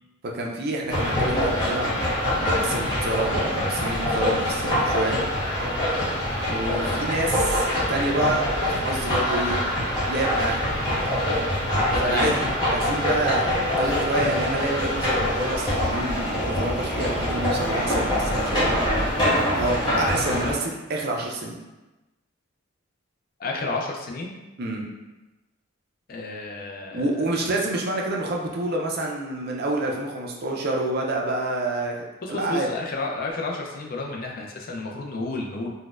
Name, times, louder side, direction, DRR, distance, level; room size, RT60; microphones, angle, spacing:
voice 1, 0.2-5.2 6.5-9.6 10.1-10.6 12.0-12.3 12.7-18.8 19.5-21.6 24.6-24.9 26.9-32.7, right 2 dB, 50° right, 0 dB, 0.5 m, -28 dB
sound 1, 0.9-20.5, left 1 dB, 20° left, 1.0 m, -24 dB
voice 2, 11.9-12.3 23.4-24.3 26.1-27.2 32.2-35.7, left 2 dB, 45° left, 0 dB, 0.4 m, -31 dB
4.0 x 2.2 x 2.4 m, 1.1 s
head